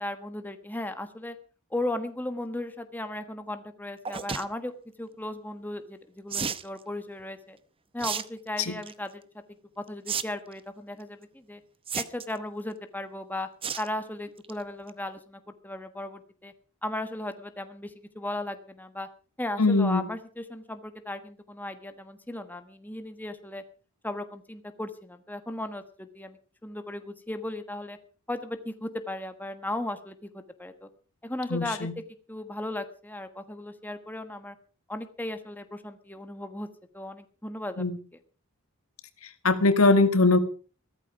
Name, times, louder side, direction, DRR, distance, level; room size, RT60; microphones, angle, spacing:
voice 1, 0.0-1.3 1.7-4.7 5.0-7.6 7.9-9.2 9.8-11.6 11.9-13.5 13.8-16.5 16.8-19.1 19.4-23.6 24.0-28.0 28.3-30.9 31.2-31.9 32.3-34.5 34.9-36.7 36.9-37.8, left 1 dB, 10° left, 8 dB, 1.3 m, -36 dB
sound 1, 4.0-4.4 6.3-6.7 8.0-8.2 8.6-8.9 10.1-10.2 10.5-10.6 11.9-12.4 13.6-13.9 14.3-14.5 14.9-15.0 15.2-15.3, right 6 dB, 25° right, 0.8 m, -32 dB
voice 2, 19.6-20.1 31.5-31.9 37.8-38.0 39.2-40.4, left 3 dB, 75° left, 10 dB, 1.9 m, -22 dB
15.5 x 13.5 x 5.1 m, 0.39 s
head